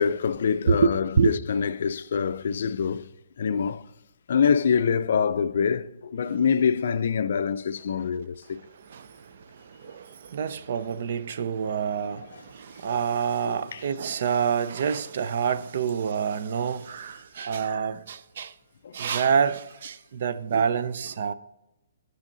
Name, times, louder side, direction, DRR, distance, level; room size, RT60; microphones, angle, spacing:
voice 1, 0.0-3.1 3.4-3.8 4.3-8.6 13.4-13.8 18.8-19.0, left 6 dB, 60° left, 0.4 m, -25 dB
voice 2, 0.7-1.4 8.8-18.5 18.9-21.3, right 6 dB, 50° right, 0.5 m, -27 dB
10.0 x 6.3 x 3.9 m
hypercardioid pair, 165°, 0 cm